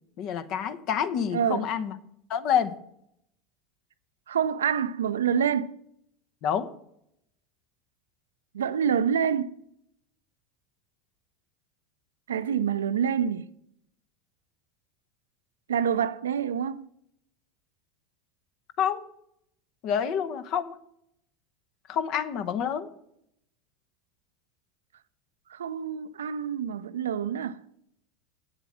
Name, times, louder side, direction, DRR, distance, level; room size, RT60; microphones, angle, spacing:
voice 1, 0.2-1.9 2.3-2.7 6.4-6.7 18.8-19.0 19.8-20.8 21.9-22.9, left 8 dB, 55° left, 0.9 m, -27 dB
voice 2, 1.3-1.7 4.3-5.7 8.5-9.6 12.3-13.5 15.7-16.9 25.5-27.6, right 8 dB, 85° right, 0.5 m, -27 dB
8.4 x 7.9 x 6.1 m
hypercardioid pair, 85°, 0 cm